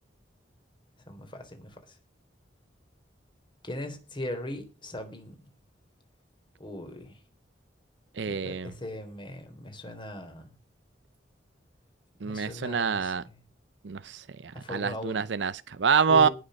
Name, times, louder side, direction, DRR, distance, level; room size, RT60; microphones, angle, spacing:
voice 1, 1.1-1.8 3.6-5.5 6.6-7.2 8.2-10.5 12.2-13.1 14.5-15.3 16.1-16.3, left 1 dB, 30° left, 3.5 m, -39 dB
voice 2, 8.2-8.7 12.2-13.2 13.8-16.3, right 6 dB, 70° right, 0.6 m, -26 dB
18.5 x 6.6 x 6.4 m
head